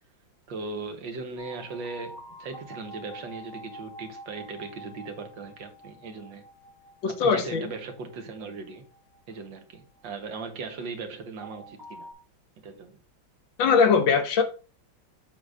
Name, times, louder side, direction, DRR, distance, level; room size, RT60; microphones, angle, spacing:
voice 1, 0.5-6.4 7.1-8.8 9.3-12.1 12.6-13.0, right 4 dB, 70° right, 1.9 m, -38 dB
sound 1, 1.4-10.4 11.4-12.1, equal, 10° right, 2.7 m, -47 dB
voice 2, 7.0-7.6 13.6-14.4, left 5 dB, 70° left, 1.9 m, -21 dB
7.9 x 3.9 x 4.9 m
omnidirectional pair, 2.1 m